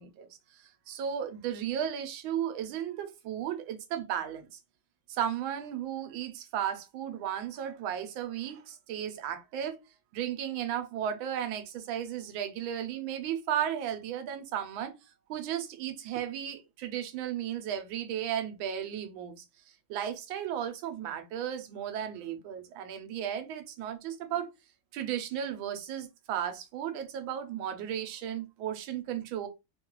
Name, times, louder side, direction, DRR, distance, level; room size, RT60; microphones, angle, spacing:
voice 1, 0.0-4.6 5.1-9.8 10.1-15.0 15.3-19.4 19.9-24.5 24.9-29.5, right 10 dB, 80° right, 1.4 m, -35 dB
3.5 x 2.3 x 3.0 m
omnidirectional pair, 2.2 m